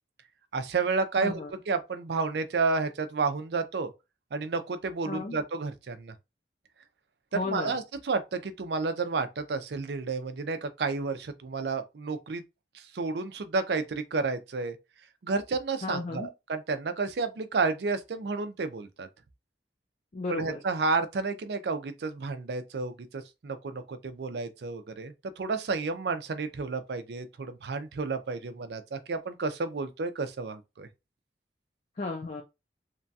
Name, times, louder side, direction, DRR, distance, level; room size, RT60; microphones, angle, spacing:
voice 1, 0.5-3.9 4.3-6.1 7.3-12.4 12.7-14.8 15.2-19.1 20.3-30.9, right 4 dB, 65° right, 0.5 m, -31 dB
voice 2, 1.2-1.5 5.1-5.4 7.3-7.8 15.8-16.3 20.1-20.6 32.0-32.4, left 3 dB, 40° left, 0.4 m, -34 dB
3.0 x 2.3 x 2.6 m
head